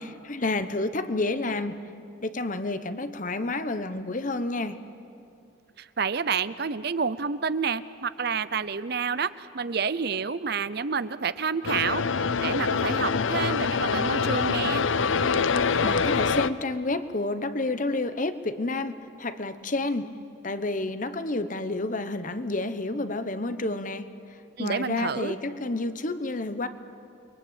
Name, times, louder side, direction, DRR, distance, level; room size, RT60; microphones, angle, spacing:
voice 1, 0.0-1.8 2.2-4.8 15.8-20.1 20.4-24.1 24.6-26.7, left 2 dB, 40° left, 11 dB, 1.0 m, -30 dB
voice 2, 6.0-12.0 12.4-14.9 24.6-25.3, right 5 dB, 55° right, 15 dB, 0.7 m, -29 dB
sound 1, 11.6-16.5, left 5 dB, 80° left, 0.7 m, -25 dB
29.0 x 22.5 x 8.8 m, 2.5 s
head